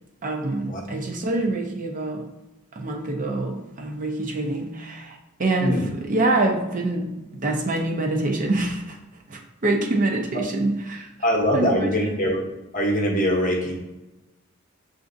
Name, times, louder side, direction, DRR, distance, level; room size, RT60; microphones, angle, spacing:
voice 1, 0.2-2.2 2.8-9.0 9.3-11.1 11.5-12.1, right 2 dB, 40° right, 1 dB, 0.5 m, -25 dB
voice 2, 5.6-5.9 11.2-12.5 12.7-13.7, equal, 40° left, -1 dB, 0.9 m, -22 dB
7.0 x 2.5 x 2.5 m, 1.0 s
head